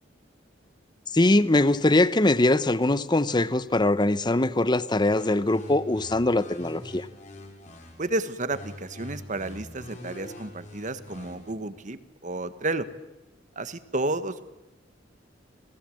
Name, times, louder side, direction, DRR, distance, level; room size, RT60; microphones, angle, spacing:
voice 1, 1.1-7.1, left 2 dB, 25° left, 15 dB, 0.9 m, -22 dB
sound 1, 5.1-8.1 8.5-11.5, left 1 dB, 40° left, 6.0 m, -44 dB
voice 2, 8.0-12.9 13.5-14.5, right 2 dB, 45° right, 12 dB, 1.4 m, -31 dB
29.0 x 19.5 x 7.8 m, 1.0 s
head